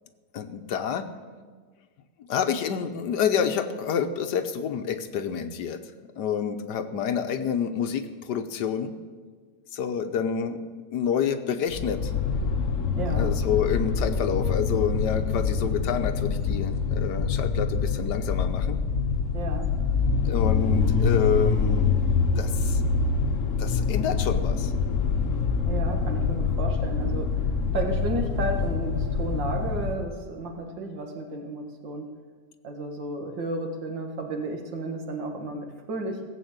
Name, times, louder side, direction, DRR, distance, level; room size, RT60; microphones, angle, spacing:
voice 1, 0.3-1.1 2.3-5.8 6.2-8.9 9.7-10.6 10.9-12.1 13.1-18.8 20.2-22.0 22.4-22.8 23.6-24.7, left 7 dB, 65° left, 9 dB, 1.4 m, -28 dB
sound 1, 11.7-30.1, left 5 dB, 50° left, 1.2 m, -25 dB
voice 2, 13.0-13.3 19.3-19.7 25.7-32.1 32.6-36.3, right 2 dB, 70° right, 4 dB, 2.3 m, -33 dB
17.0 x 7.7 x 8.0 m, 1.5 s
omnidirectional pair, 2.1 m